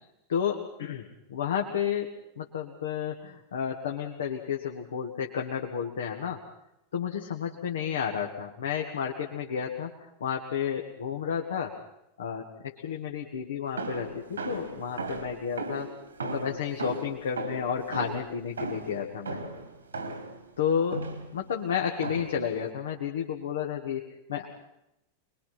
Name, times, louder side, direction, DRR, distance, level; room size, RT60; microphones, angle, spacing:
voice 1, 0.3-6.4 6.9-9.9 10.2-11.7 12.2-15.9 16.2-19.4 20.6-21.1 21.3-24.5, left 7 dB, 65° left, 1 dB, 1.9 m, -31 dB
sound 1, 13.8-20.4 20.9-21.4 22.0-22.5, right 3 dB, 75° right, 2.5 m, -37 dB
24.5 x 21.5 x 5.8 m, 0.86 s
figure-of-eight pair, 90°, 0 cm